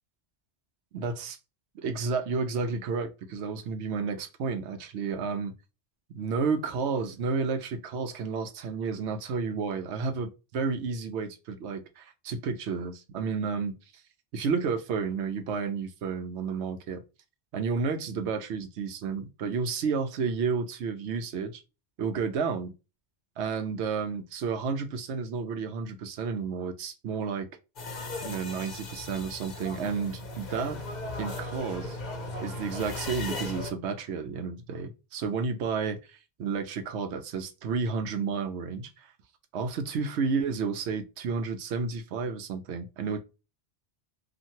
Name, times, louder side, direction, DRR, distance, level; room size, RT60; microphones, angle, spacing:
voice 1, 0.9-1.4 1.7-5.5 6.1-13.7 14.3-17.0 17.5-21.6 22.0-22.7 23.4-27.5 28.2-30.8 31.2-32.0 32.4-39.1 39.5-43.2, right 5 dB, 85° right, 0.9 m, -31 dB
sound 1, 27.8-33.7, left 2 dB, 50° left, 0.7 m, -37 dB
2.9 x 2.5 x 2.6 m
omnidirectional pair, 1.1 m